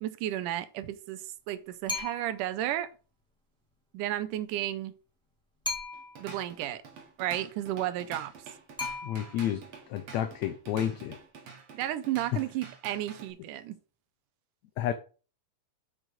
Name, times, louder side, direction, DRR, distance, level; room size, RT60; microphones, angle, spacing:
voice 1, 0.0-2.9 3.9-4.9 6.2-6.8 7.2-8.3 11.7-13.8, right 13 dB, 85° right, 2.1 m, -33 dB
sound 1, 1.9-2.5 5.6-6.3 8.8-9.6, left 3 dB, 5° left, 0.3 m, -36 dB
Drum kit / Drum, 5.9-13.3, right 5 dB, 55° right, 2.5 m, -47 dB
voice 2, 9.0-9.6 9.9-11.2 14.8-14.9, left 10 dB, 75° left, 1.7 m, -30 dB
6.4 x 6.2 x 5.0 m
omnidirectional pair, 3.8 m